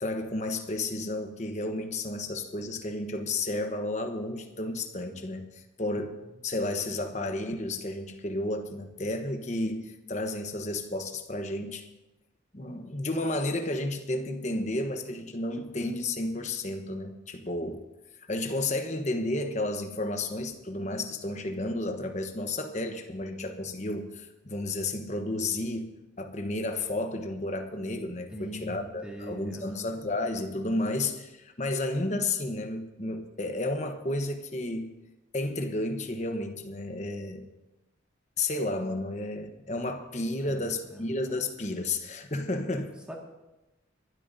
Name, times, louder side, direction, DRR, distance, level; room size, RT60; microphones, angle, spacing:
voice 1, 0.0-11.8 12.5-17.8 18.2-34.9 35.3-37.5 38.4-42.9, left 2 dB, 35° left, 6 dB, 1.1 m, -32 dB
voice 2, 28.3-29.9 40.4-41.1 43.1-43.2, right 1 dB, 5° right, -1 dB, 2.0 m, -42 dB
23.5 x 12.5 x 2.7 m, 1.0 s
head